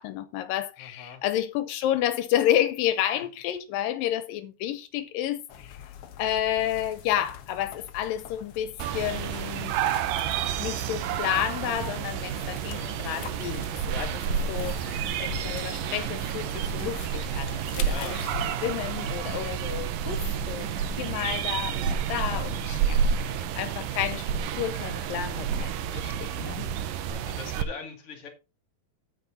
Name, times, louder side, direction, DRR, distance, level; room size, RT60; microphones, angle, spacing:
voice 1, 0.0-5.8 6.2-9.7 10.5-14.2 14.5-18.2 18.6-20.7 21.0-24.3 24.6-26.7, left 11 dB, 85° left, 2.4 m, -30 dB
voice 2, 0.8-1.2 12.3-13.0 14.2-14.7 17.8-18.4 22.9-23.7 27.1-28.3, left 5 dB, 40° left, 3.3 m, -44 dB
sound 1, 5.5-23.0, left 9 dB, 65° left, 1.5 m, -44 dB
sound 2, 8.8-27.6, right 8 dB, 75° right, 2.5 m, -30 dB
sound 3, 21.8-22.4 22.7-22.8 23.1-23.2 23.6-23.7 27.1-27.2, right 8 dB, 60° right, 2.3 m, -45 dB
9.3 x 8.6 x 4.1 m
omnidirectional pair, 4.0 m